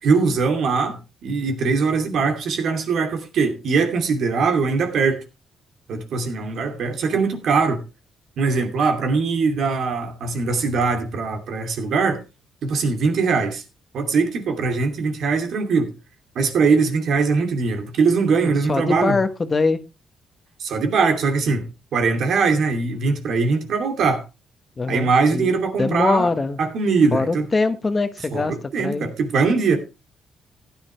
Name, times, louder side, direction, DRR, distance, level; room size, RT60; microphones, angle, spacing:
voice 1, 0.0-5.2 5.9-7.8 8.4-12.2 12.6-13.6 13.9-15.9 16.3-19.2 20.6-24.2 24.9-26.3 26.6-27.5 28.3-29.8, right 4 dB, 70° right, 2.7 m, -21 dB
voice 2, 18.7-19.8 24.8-25.5 25.8-26.6 27.1-28.5 28.8-29.1, left 3 dB, 30° left, 1.1 m, -22 dB
15.0 x 9.9 x 3.2 m
cardioid pair, 90°, 0 cm